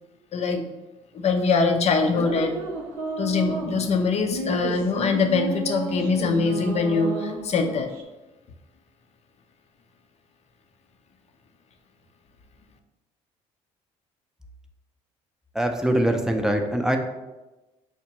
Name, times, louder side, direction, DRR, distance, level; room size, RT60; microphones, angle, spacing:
voice 1, 0.3-0.6 1.2-2.5 3.2-7.9, left 4 dB, 45° left, 5 dB, 0.6 m, -23 dB
sound 1, 2.1-8.0, right 2 dB, 90° right, 0.6 m, -32 dB
voice 2, 15.5-17.0, right 1 dB, 5° right, 4 dB, 0.5 m, -23 dB
5.7 x 2.2 x 2.9 m, 1.1 s
supercardioid pair, 70°, 15 cm